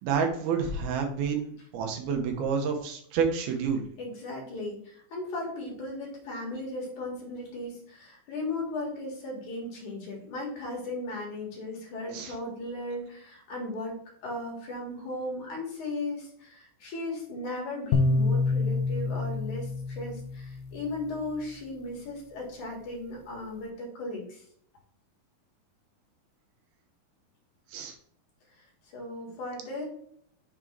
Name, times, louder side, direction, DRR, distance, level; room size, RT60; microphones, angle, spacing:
voice 1, 0.0-3.9 12.1-12.3 27.7-27.9, right 6 dB, 85° right, 3 dB, 2.9 m, -29 dB
voice 2, 4.0-24.4 28.6-28.7 28.9-29.8, left 2 dB, 60° left, -1 dB, 3.1 m, -36 dB
sound 1, 17.9-21.2, left 3 dB, 90° left, 1.6 m, -27 dB
7.1 x 3.9 x 4.5 m, 0.66 s
omnidirectional pair, 4.3 m